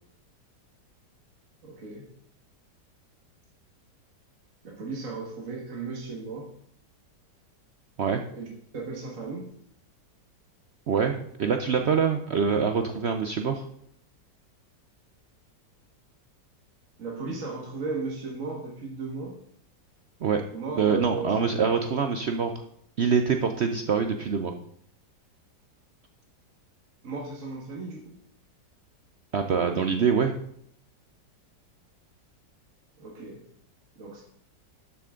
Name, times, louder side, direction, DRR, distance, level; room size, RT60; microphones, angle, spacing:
voice 1, 1.6-2.0 4.6-6.5 8.3-8.5 8.7-9.5 17.0-19.4 20.5-21.3 27.0-28.2 33.0-33.4 34.0-34.2, right 4 dB, 45° right, -1 dB, 1.9 m, -35 dB
voice 2, 10.9-13.6 20.2-20.4 20.8-22.6 23.0-24.5 29.3-30.3, right 6 dB, 75° right, 6 dB, 0.6 m, -25 dB
12.5 x 7.0 x 3.7 m, 0.68 s
omnidirectional pair, 1.9 m